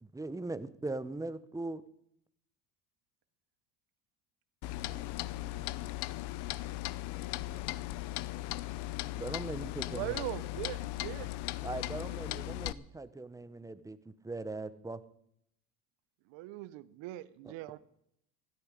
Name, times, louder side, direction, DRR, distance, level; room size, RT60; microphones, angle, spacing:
voice 1, 0.0-1.8 9.1-10.1 11.6-14.0 14.2-15.0 17.4-17.5, right 2 dB, 5° right, 0.9 m, -40 dB
Clock, 4.6-12.7, left 17 dB, 60° left, 0.7 m, -38 dB
voice 2, 4.8-8.2, right 8 dB, 55° right, 2.1 m, -63 dB
voice 3, 9.9-11.3 16.3-17.8, right 16 dB, 70° right, 0.9 m, -40 dB
16.0 x 12.5 x 5.1 m
supercardioid pair, 105°, 46 cm